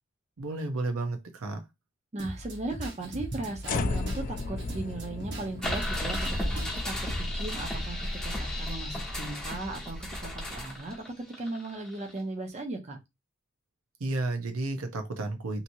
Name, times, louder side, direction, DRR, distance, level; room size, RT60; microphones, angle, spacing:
voice 1, 0.4-1.6 14.0-15.6, right 2 dB, 80° right, 0.7 m, -32 dB
voice 2, 2.1-11.0 11.4-13.0, right 2 dB, 35° right, 0.7 m, -37 dB
sound 1, 2.2-7.2, right 1 dB, 60° right, 1.1 m, -40 dB
sound 2, 3.6-9.9, left 3 dB, 40° left, 0.3 m, -37 dB
sound 3, 5.6-12.2, left 1 dB, 5° left, 1.1 m, -34 dB
2.9 x 2.8 x 2.6 m
head